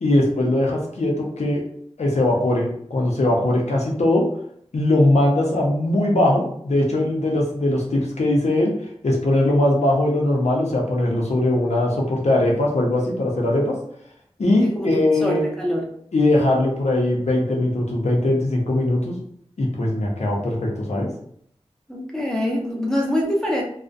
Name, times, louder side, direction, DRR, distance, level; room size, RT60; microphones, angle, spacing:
voice 1, 0.0-1.6 2.0-4.3 4.7-8.7 9.0-13.8 14.4-15.5 16.1-19.2 19.6-21.1, left 1 dB, 85° left, -2 dB, 0.6 m, -20 dB
voice 2, 14.6-15.8 21.9-23.6, equal, 5° left, -2 dB, 0.7 m, -24 dB
2.4 x 2.1 x 2.5 m, 0.66 s
wide cardioid pair, 75°, 11 cm